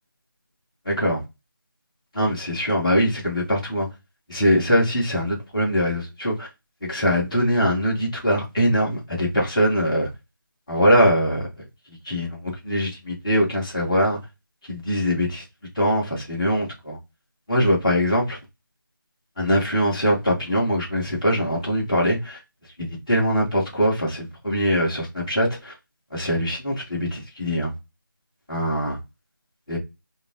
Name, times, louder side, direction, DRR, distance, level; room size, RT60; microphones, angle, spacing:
voice 1, 0.8-1.2 2.1-3.9 4.3-6.5 6.8-10.1 10.7-11.4 11.9-14.2 14.7-15.4 15.8-17.0 17.5-18.4 19.4-22.4 22.8-25.7 26.1-27.7 28.5-29.0 29.7-29.8, equal, 15° left, 2.2 m, -22 dB
5.3 x 2.5 x 3.9 m
figure-of-eight pair, 180°, 12 cm